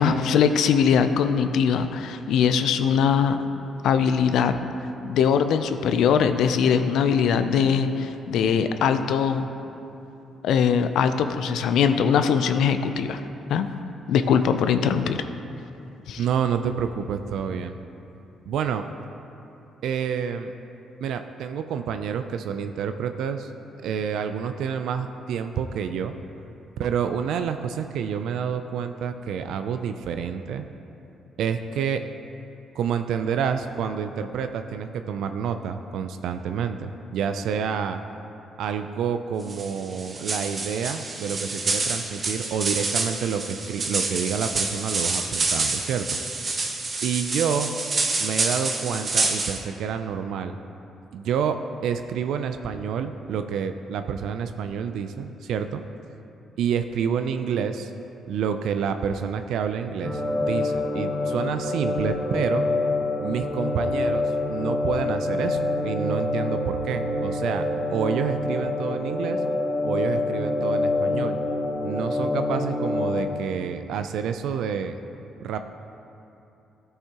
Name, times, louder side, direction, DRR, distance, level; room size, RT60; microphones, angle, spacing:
voice 1, 0.0-3.4 3.8-4.6 5.0-9.5 10.4-13.2 13.5-13.7 14.1-15.2 16.1-16.2, left 7 dB, 80° left, 9 dB, 0.4 m, -21 dB
voice 2, 16.2-17.8 18.5-18.8 19.8-20.5 21.0-23.5 23.8-26.1 26.8-30.7 31.4-32.0 32.7-38.0 38.6-46.2 47.0-47.7 48.2-50.6 51.1-55.8 56.6-57.9 58.3-62.7 63.2-67.6 67.9-69.4 69.8-71.4 71.8-75.0 75.4-75.6, right 7 dB, 80° right, 8 dB, 0.3 m, -28 dB
sound 1, 39.5-49.6, right 3 dB, 40° right, 0.9 m, -27 dB
sound 2, 60.0-73.2, left 2 dB, 25° left, 1.5 m, -26 dB
13.5 x 5.6 x 2.9 m, 2.9 s
cardioid pair, 90°, 0 cm